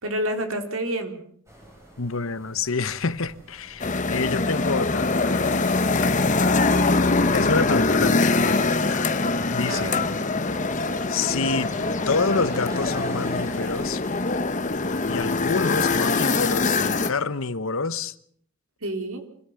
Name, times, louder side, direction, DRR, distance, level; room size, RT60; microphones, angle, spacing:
voice 1, 0.0-1.2 9.7-10.1 18.8-19.2, right 1 dB, 80° right, 3.6 m, -28 dB
sound 1, 1.5-16.1, right 1 dB, 15° right, 6.5 m, -43 dB
voice 2, 2.0-5.6 7.3-9.1 9.5-10.0 11.1-11.7 12.1-14.0 15.1-18.2, left 4 dB, 70° left, 1.0 m, -28 dB
sound 2, 3.8-17.1, left 3 dB, 35° left, 1.0 m, -23 dB
25.0 x 16.5 x 7.0 m
head